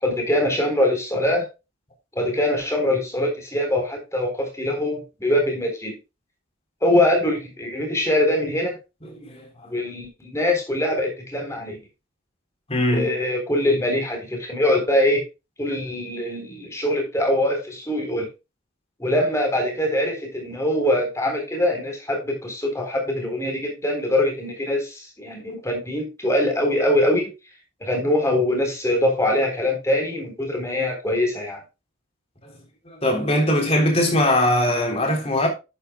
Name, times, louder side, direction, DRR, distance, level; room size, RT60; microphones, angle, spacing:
voice 1, 0.0-1.5 2.2-6.0 6.8-8.8 9.7-11.8 12.9-15.2 15.6-18.3 19.0-27.3 27.8-31.6, left 1 dB, 15° left, 3.8 m, -23 dB
voice 2, 9.1-9.7 12.7-13.1 32.9-35.5, left 1 dB, 30° left, 3.5 m, -21 dB
11.0 x 9.3 x 2.3 m
head